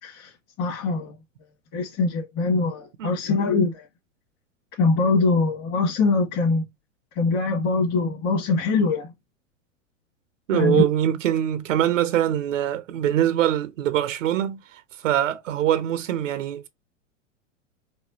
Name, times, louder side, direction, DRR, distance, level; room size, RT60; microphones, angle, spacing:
voice 1, 0.0-0.3 0.6-1.2 1.7-3.9 4.8-6.7 7.2-9.1 10.5-10.8, left 3 dB, 40° left, 2.0 m, -23 dB
voice 2, 10.5-16.7, right 11 dB, 70° right, 0.7 m, -23 dB
5.1 x 2.3 x 2.8 m
hypercardioid pair, 100°, 39 cm